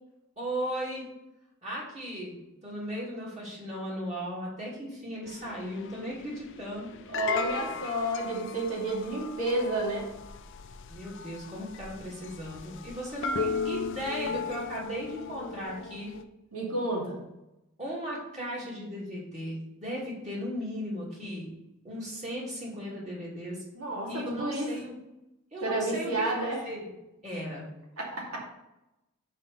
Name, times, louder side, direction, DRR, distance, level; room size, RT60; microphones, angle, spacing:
voice 1, 0.4-1.1 1.6-2.3 2.6-6.9 10.9-16.1 17.8-21.5 21.8-23.6 24.1-24.9 25.5-26.1 26.3-26.9 27.2-27.7, equal, 35° right, -6 dB, 2.8 m, -36 dB
sound 1, 5.3-16.2, left 5 dB, 60° left, 0.5 m, -37 dB
voice 2, 7.1-10.1 16.5-17.2 23.7-24.7 25.6-26.6 28.0-28.4, right 1 dB, 80° right, -3 dB, 2.5 m, -30 dB
5.6 x 4.9 x 6.6 m, 0.92 s
head